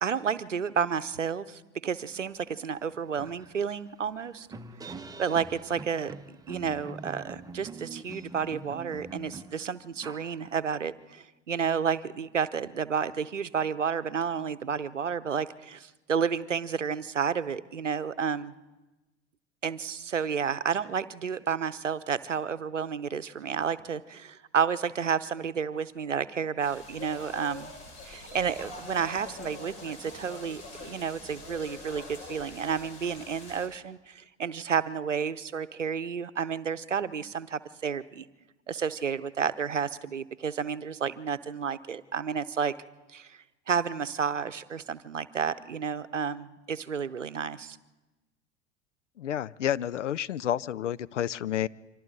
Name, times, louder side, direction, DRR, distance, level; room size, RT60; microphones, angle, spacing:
voice 1, 0.0-4.5 5.2-6.1 6.5-18.5 19.6-27.7 28.0-38.3 38.7-42.7 43.1-43.4 43.7-47.8, right 7 dB, 90° right, 15 dB, 0.8 m, -31 dB
sound 1, 2.4-2.5 2.8-10.9, right 3 dB, 10° right, 1.1 m, -45 dB
sound 2, 26.6-33.7, left 3 dB, 45° left, 6.3 m, -44 dB
voice 2, 49.2-51.7, left 10 dB, 80° left, 18 dB, 0.6 m, -30 dB
30.0 x 25.0 x 4.0 m, 1.1 s
figure-of-eight pair, 80°, 36 cm